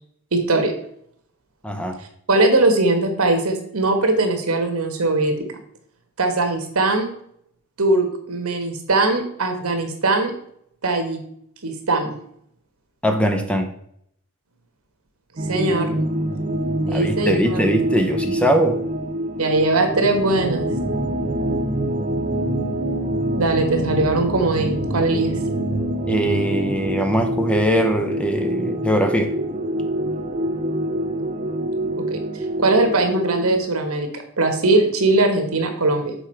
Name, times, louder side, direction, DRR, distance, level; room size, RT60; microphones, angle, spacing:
voice 1, 0.3-0.7 2.3-5.3 6.2-7.1 7.8-10.3 10.8-11.2 11.6-12.2 15.4-15.9 16.9-17.6 19.4-20.7 23.4-25.3 32.0-32.2 32.6-36.1, right 2 dB, 80° right, 5 dB, 1.3 m, -20 dB
voice 2, 1.6-2.0 13.0-13.7 16.9-18.8 26.1-29.3, equal, 5° left, 5 dB, 0.6 m, -21 dB
sound 1, 15.4-33.6, right 1 dB, 35° right, 0.6 m, -25 dB
7.0 x 4.6 x 4.4 m, 0.70 s
head